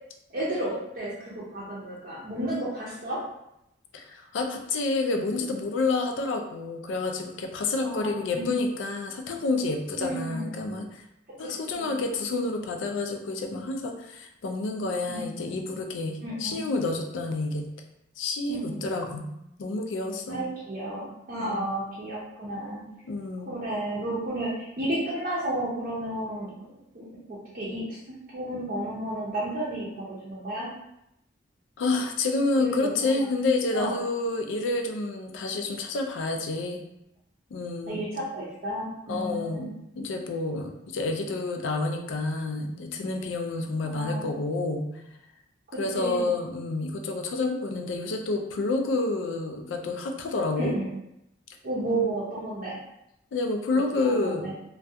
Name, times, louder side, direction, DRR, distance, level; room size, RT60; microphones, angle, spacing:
voice 1, 0.3-3.2 7.8-8.5 10.0-10.5 11.4-11.5 11.8-12.0 15.1-15.3 16.2-16.6 18.5-18.8 20.3-22.8 23.5-26.5 26.9-28.0 28.3-30.7 32.6-33.1 33.7-34.0 37.9-39.7 43.9-44.3 45.9-46.3 50.6-50.9 51.6-52.8 54.0-54.5, right 1 dB, 45° right, -7 dB, 0.5 m, -32 dB
voice 2, 3.9-11.0 11.4-17.7 18.2-19.3 19.6-20.5 21.4-21.7 23.0-23.5 31.8-36.8 37.5-38.0 39.1-44.9 45.8-50.8 53.3-54.5, left 3 dB, 80° left, 4 dB, 0.4 m, -29 dB
2.3 x 2.2 x 2.6 m, 0.83 s
head